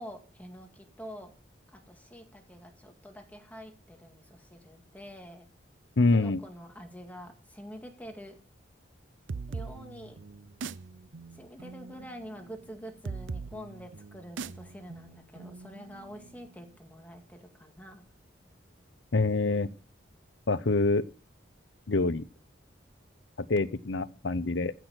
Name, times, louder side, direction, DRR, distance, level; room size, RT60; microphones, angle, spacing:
voice 1, 0.0-1.3 1.7-5.5 6.1-8.4 9.5-10.2 11.3-18.0, equal, 10° left, 2.1 m, -46 dB
voice 2, 6.0-6.4 19.1-19.7 20.5-21.0 21.9-22.2 23.5-24.7, left 3 dB, 70° left, 0.7 m, -25 dB
sound 1, 9.3-16.7, right 4 dB, 90° right, 0.6 m, -42 dB
15.5 x 6.1 x 8.0 m
head